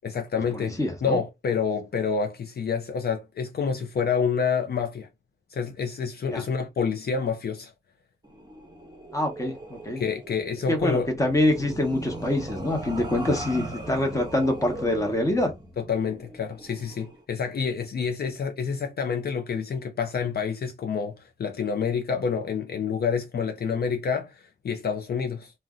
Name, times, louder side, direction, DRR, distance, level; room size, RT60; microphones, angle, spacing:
voice 1, 0.0-5.1 5.5-7.7 10.0-11.1 15.8-25.5, left 6 dB, 60° left, 0.4 m, -28 dB
voice 2, 0.5-1.2 6.3-6.4 9.1-10.0 10.7-15.5, left 1 dB, 15° left, 0.9 m, -25 dB
sound 1, 8.2-17.2, right 2 dB, 20° right, 0.7 m, -39 dB
2.5 x 2.1 x 3.5 m
wide cardioid pair, 125°, 19 cm